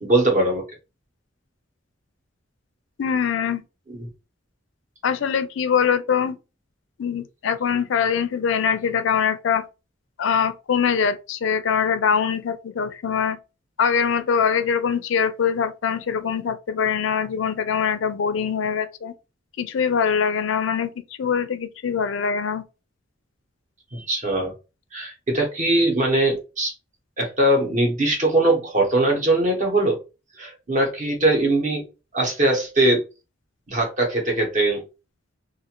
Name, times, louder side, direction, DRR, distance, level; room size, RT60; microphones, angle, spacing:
voice 1, 0.0-0.6 3.9-4.1 23.9-24.5 24.9-26.7 27.2-30.0 30.4-31.8 32.1-33.0 33.7-34.8, right 1 dB, 40° right, 1.0 m, -21 dB
voice 2, 3.0-3.6 5.0-6.4 7.0-9.6 10.2-13.4 13.8-19.1 19.6-20.9 21.2-22.6, left 7 dB, 70° left, 0.4 m, -23 dB
2.5 x 2.5 x 2.9 m
head